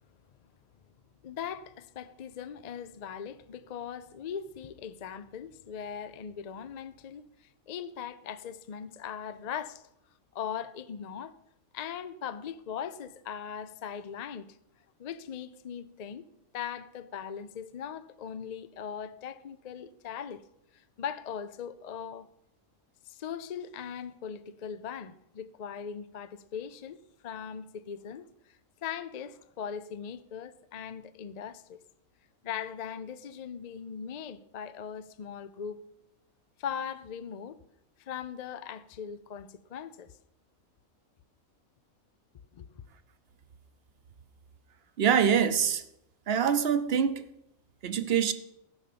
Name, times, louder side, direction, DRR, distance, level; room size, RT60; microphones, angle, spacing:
voice 1, 1.2-7.3 7.7-9.8 10.3-11.3 11.7-14.6 15.0-16.3 16.5-20.4 20.7-22.3 23.1-28.3 28.8-31.8 32.4-35.8 36.6-37.6 38.1-40.1 42.5-42.8, left 8 dB, 60° left, 0.4 m, -39 dB
voice 2, 45.0-45.8 46.3-47.2 47.8-48.3, right 8 dB, 50° right, 0.9 m, -25 dB
14.5 x 5.6 x 6.8 m
omnidirectional pair, 1.5 m